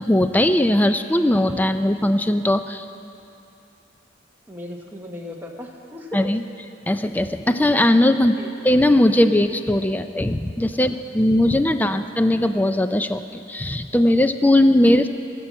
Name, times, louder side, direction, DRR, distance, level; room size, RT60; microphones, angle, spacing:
voice 1, 0.0-2.8 6.1-6.4 6.9-8.4 8.6-15.1, left 1 dB, 10° left, 9 dB, 0.4 m, -19 dB
voice 2, 4.5-6.3 8.3-8.5 10.8-11.0 11.7-12.0, left 1 dB, 10° right, -1 dB, 1.1 m, -37 dB
16.0 x 7.7 x 7.2 m, 2.8 s
head